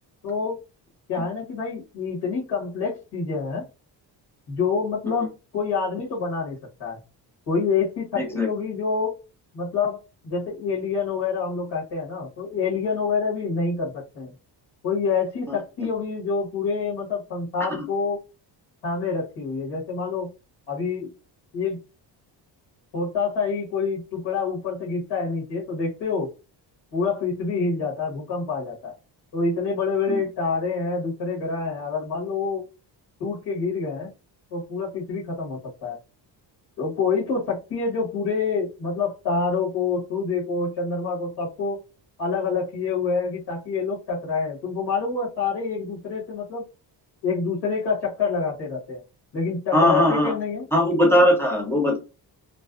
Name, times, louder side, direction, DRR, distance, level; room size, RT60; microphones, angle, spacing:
voice 1, 0.2-0.6 1.1-3.6 4.5-7.0 7.5-9.2 9.5-14.3 14.8-18.2 18.8-20.3 20.7-21.1 21.5-21.8 22.9-26.3 26.9-28.9 29.3-32.6 33.2-34.1 34.5-36.0 36.8-41.8 42.2-46.6 47.2-49.0 49.3-50.6 51.1-51.3, left 4 dB, 70° left, -5 dB, 1.2 m, -27 dB
voice 2, 8.2-8.5 17.7-17.8 30.1-30.2 49.7-50.3 50.7-52.0, left 1 dB, 5° left, 1 dB, 0.6 m, -20 dB
2.5 x 2.2 x 2.3 m, 0.30 s
cardioid pair, 140°, 42 cm